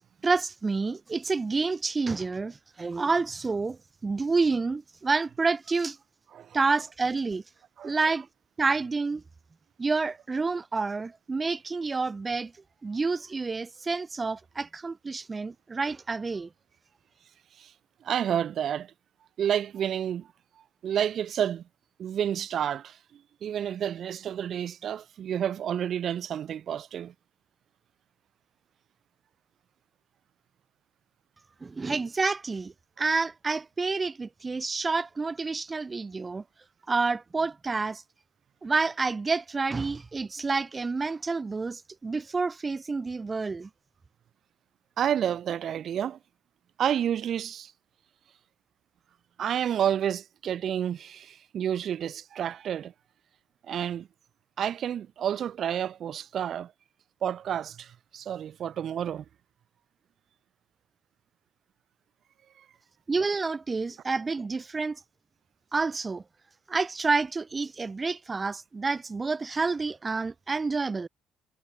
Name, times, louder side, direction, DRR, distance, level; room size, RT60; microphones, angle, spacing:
voice 1, 0.2-6.0 6.5-7.4 7.8-8.3 8.6-9.2 9.8-12.5 12.8-16.5 31.6-36.4 36.9-38.0 38.6-43.7 63.1-65.0 65.7-66.2 66.7-71.1, right 4 dB, 25° right, 3.5 m, -29 dB
voice 2, 18.0-18.9 19.4-20.3 20.8-21.6 22.0-27.1 45.0-46.2 46.8-47.7 49.4-52.9 53.7-54.1 54.6-56.7 57.2-59.2 62.6-62.7, right 9 dB, 55° right, 6.6 m, -30 dB
cardioid pair, 90°, 0 cm